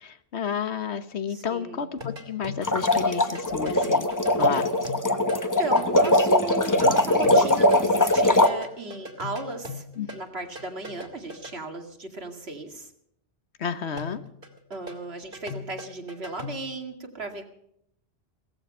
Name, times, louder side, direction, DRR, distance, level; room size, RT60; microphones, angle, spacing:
voice 1, 0.0-4.1 4.4-4.7 10.0-10.1 13.6-14.2, left 7 dB, 90° left, 12 dB, 1.4 m, -31 dB
voice 2, 1.3-1.8 5.3-9.8 10.1-12.9 14.7-17.4, right 3 dB, 75° right, 4 dB, 2.6 m, -35 dB
sound 1, 2.0-3.1 3.3-7.9 8.1-11.6 14.0-16.7, left 3 dB, 55° right, 2.7 m, -39 dB
sound 2, 2.6-8.5, left 1 dB, 20° left, 1.0 m, -21 dB
17.5 x 14.5 x 5.5 m, 0.73 s
omnidirectional pair, 1.1 m